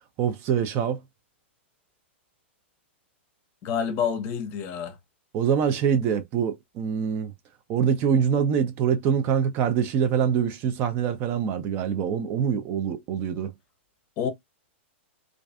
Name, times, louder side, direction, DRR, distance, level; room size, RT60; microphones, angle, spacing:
voice 1, 0.2-1.0 5.3-7.3 7.7-13.5, right 7 dB, 35° right, 0.4 m, -24 dB
voice 2, 3.6-5.0 14.2-14.3, left 7 dB, 35° left, 0.6 m, -28 dB
2.4 x 2.4 x 2.2 m
hypercardioid pair, 110°, 7 cm